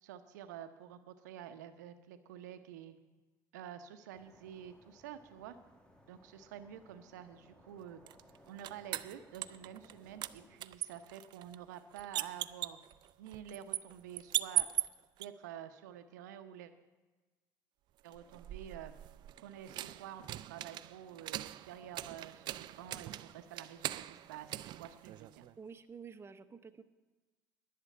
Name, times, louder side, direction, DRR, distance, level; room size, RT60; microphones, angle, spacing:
voice 1, 0.0-3.0 3.5-5.6 6.1-8.0 8.5-12.8 13.2-14.7 15.2-16.7 18.0-18.9 19.4-25.5, right 10 dB, 80° right, 10 dB, 0.8 m, -49 dB
sound 1, 4.1-10.6, equal, 10° left, 1.7 m, -63 dB
sound 2, 8.1-9.9 10.2-15.3 18.1-25.6, right 14 dB, 55° right, 0.4 m, -40 dB
voice 2, 25.6-26.8, right 6 dB, 25° right, 11 dB, 0.8 m, -50 dB
11.0 x 6.7 x 8.5 m, 1.2 s
hypercardioid pair, 65°, 9 cm